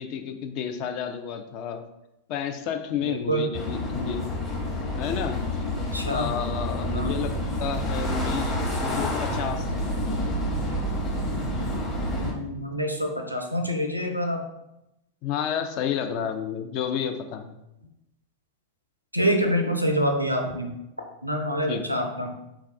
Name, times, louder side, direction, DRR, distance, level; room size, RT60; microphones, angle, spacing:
voice 1, 0.0-1.8 2.3-4.3 5.0-5.4 6.0-7.3 7.6-10.3 15.2-17.5 21.7-22.0, left 8 dB, 45° left, 6 dB, 0.3 m, -31 dB
voice 2, 3.0-3.5 5.8-6.3 6.9-7.1 12.2-14.4 19.1-20.7 21.2-22.3, equal, 90° right, 4 dB, 0.4 m, -26 dB
sound 1, 3.5-12.3, equal, 20° left, 0.9 m, -28 dB
3.4 x 2.3 x 3.2 m, 0.87 s
figure-of-eight pair, 90°, 0 cm